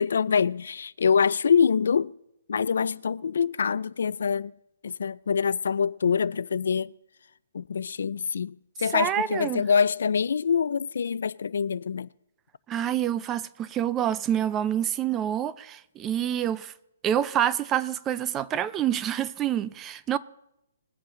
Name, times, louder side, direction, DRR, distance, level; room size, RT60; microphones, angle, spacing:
voice 1, 0.0-2.1 2.5-4.5 4.8-6.9 7.5-12.1, left 6 dB, 75° left, 0.4 m, -25 dB
voice 2, 8.9-9.6 12.7-16.7 17.0-20.2, right 10 dB, 15° right, 0.4 m, -27 dB
21.0 x 8.2 x 3.8 m
hypercardioid pair, 160°, 0 cm